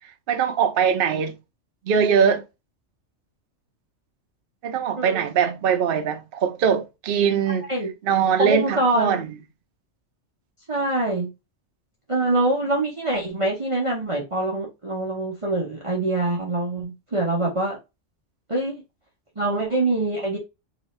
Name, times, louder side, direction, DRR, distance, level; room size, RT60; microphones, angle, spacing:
voice 1, 0.3-1.3 1.9-2.4 4.6-7.7 8.0-9.3, right 7 dB, 55° right, 0.8 m, -21 dB
voice 2, 5.0-5.3 7.7-7.9 8.4-9.1 10.7-11.3 12.1-17.8 18.5-18.8 19.4-20.4, right 2 dB, 30° right, 0.9 m, -24 dB
4.0 x 2.6 x 3.1 m
omnidirectional pair, 1.3 m